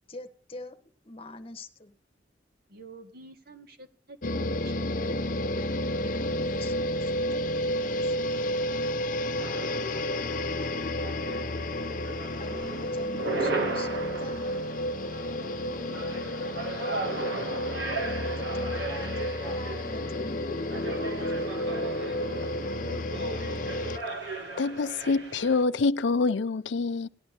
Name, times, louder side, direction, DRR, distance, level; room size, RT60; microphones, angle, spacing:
voice 1, 0.1-0.8 1.0-1.9 5.9-8.6 12.4-14.7 18.4-20.4 21.2-21.3, left 2 dB, 30° left, 1.3 m, -44 dB
voice 2, 2.7-5.3 9.3-11.5 15.4-17.7 21.2-23.8, equal, 55° right, 2.0 m, -49 dB
sound 1, 4.2-24.0, left 1 dB, 45° left, 0.7 m, -31 dB
sound 2, 9.4-25.6, right 3 dB, 80° right, 2.5 m, -37 dB
voice 3, 24.6-27.1, left 4 dB, 85° left, 0.5 m, -26 dB
18.5 x 11.5 x 2.9 m
head